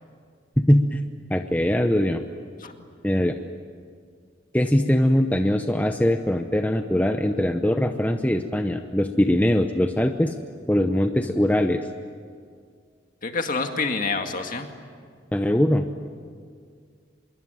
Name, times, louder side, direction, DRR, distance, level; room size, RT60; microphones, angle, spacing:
voice 1, 0.6-1.0 1.3-2.2 3.0-3.4 4.5-10.3 10.7-11.9 15.3-15.8, left 1 dB, 10° left, 6 dB, 0.8 m, -21 dB
voice 2, 13.2-14.7, left 4 dB, 45° left, 5 dB, 2.1 m, -27 dB
26.0 x 22.5 x 9.3 m, 2.1 s
head